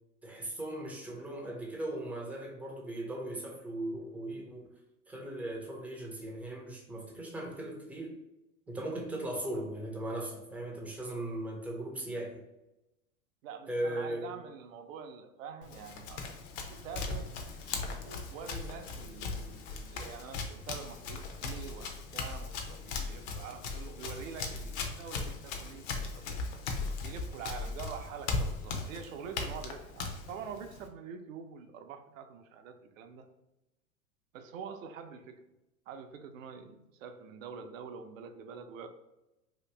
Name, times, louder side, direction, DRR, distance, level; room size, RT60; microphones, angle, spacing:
voice 1, 0.2-4.7 5.1-8.2 8.7-12.4 13.7-14.4, right 1 dB, 5° right, -1 dB, 0.4 m, -38 dB
voice 2, 13.4-16.3 16.7-17.3 18.0-26.4 27.0-33.3 34.3-35.5 35.9-38.9, right 6 dB, 65° right, 7 dB, 0.6 m, -45 dB
Run, 15.6-30.9, left 4 dB, 50° left, 0.7 m, -38 dB
2.9 x 2.5 x 3.3 m, 0.95 s
hypercardioid pair, 105°, 43 cm